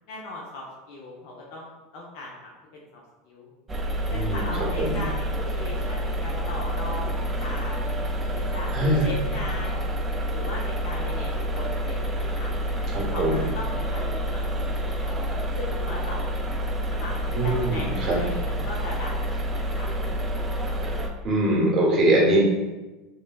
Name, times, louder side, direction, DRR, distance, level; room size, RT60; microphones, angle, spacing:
voice 1, 0.1-2.3 2.7-2.8 3.3-3.5 4.1-7.8 8.3-9.8 10.3-14.4 14.8-16.5 16.9-19.9, left 2 dB, 65° left, -3 dB, 0.5 m, -38 dB
sound 1, 3.7-21.1, equal, 20° right, 0.3 m, -28 dB
voice 2, 4.1-4.5 4.8-5.0 8.7-9.1 12.9-13.4 17.3-18.2 20.8-22.5, right 1 dB, 40° right, -2 dB, 0.9 m, -23 dB
3.1 x 2.1 x 2.2 m, 1.1 s
supercardioid pair, 110°, 0 cm